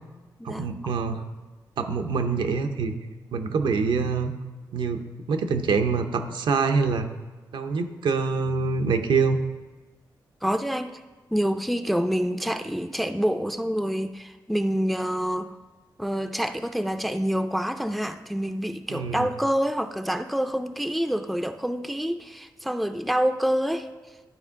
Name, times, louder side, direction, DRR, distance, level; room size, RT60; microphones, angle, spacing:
voice 1, 0.4-1.2 1.8-2.9 3.3-4.3 4.7-7.1 7.5-9.4 18.9-19.3, right 5 dB, 85° right, 7 dB, 0.6 m, -25 dB
voice 2, 10.4-11.0 11.3-15.6 16.0-23.9, equal, ahead, 9 dB, 0.4 m, -27 dB
11.5 x 4.4 x 3.6 m, 1.3 s
cardioid pair, 80°, 8 cm